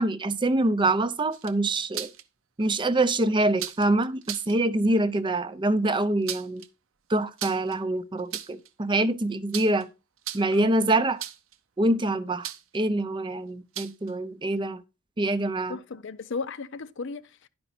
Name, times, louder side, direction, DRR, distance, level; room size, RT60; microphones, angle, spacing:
voice 1, 0.0-2.1 2.6-6.6 7.1-9.9 10.3-11.2 11.8-12.5 12.7-14.8 15.2-15.8, right 2 dB, 20° right, 0.5 m, -25 dB
sound 1, 1.3-2.2 3.6-3.9 4.2-4.5 6.0-6.7 7.4-7.8 8.2-8.7 9.5-9.8 10.2-10.6 11.2-11.6 12.4-12.8 13.7-14.1, right 11 dB, 65° right, 0.7 m, -36 dB
voice 2, 10.5-10.9 15.7-17.5, left 4 dB, 60° left, 0.5 m, -36 dB
11.0 x 5.1 x 4.2 m
head